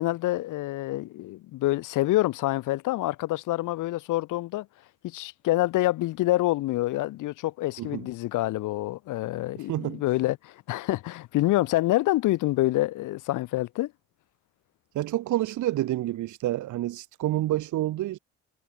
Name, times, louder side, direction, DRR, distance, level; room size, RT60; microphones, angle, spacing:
voice 1, 0.0-4.7 5.0-13.9, left 17 dB, 85° left, 1.0 m, -27 dB
voice 2, 9.7-10.0 14.9-18.2, right 15 dB, 80° right, 1.2 m, -28 dB
cardioid pair, 90°, 30 cm